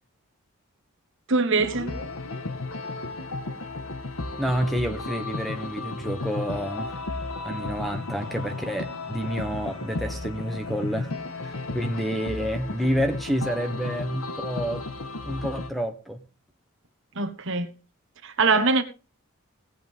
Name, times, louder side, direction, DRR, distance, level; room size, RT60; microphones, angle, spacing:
voice 1, 1.3-1.9 17.1-17.7 18.2-18.8, right 3 dB, 60° right, 1.4 m, -22 dB
sound 1, 1.6-15.7, left 2 dB, 70° left, 1.4 m, -34 dB
voice 2, 4.4-6.9 7.4-11.1 11.4-14.9 15.2-16.2, equal, ahead, 1.0 m, -29 dB
18.5 x 8.5 x 3.6 m
head